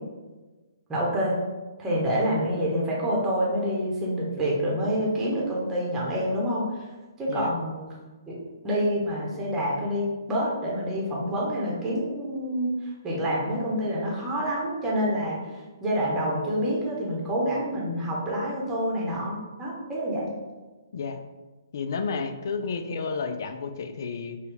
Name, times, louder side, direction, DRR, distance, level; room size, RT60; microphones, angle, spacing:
voice 1, 0.9-1.4 1.8-6.7 7.2-7.9 8.3-8.4 8.6-12.7 13.0-15.4 15.8-20.3, equal, 15° right, -4 dB, 0.9 m, -27 dB
voice 2, 21.7-24.4, left 5 dB, 60° left, 8 dB, 0.4 m, -31 dB
4.1 x 2.2 x 3.4 m, 1.2 s
hypercardioid pair, 135°, 2 cm